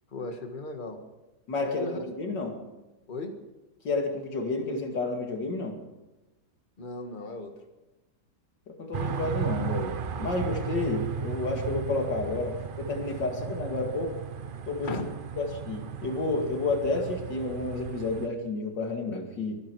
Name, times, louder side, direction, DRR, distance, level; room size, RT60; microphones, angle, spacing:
voice 1, 0.1-1.0 1.6-2.0 3.1-3.3 6.8-7.5 14.8-15.1, left 3 dB, 30° left, 5 dB, 1.7 m, -36 dB
voice 2, 1.5-2.6 3.8-5.8 8.7-14.2 14.7-14.9 15.4-19.5, left 3 dB, 90° left, 3 dB, 2.8 m, -30 dB
sound 1, 8.9-18.3, right 7 dB, 65° right, 0.5 m, -35 dB
23.5 x 10.5 x 4.7 m, 1.1 s
omnidirectional pair, 1.9 m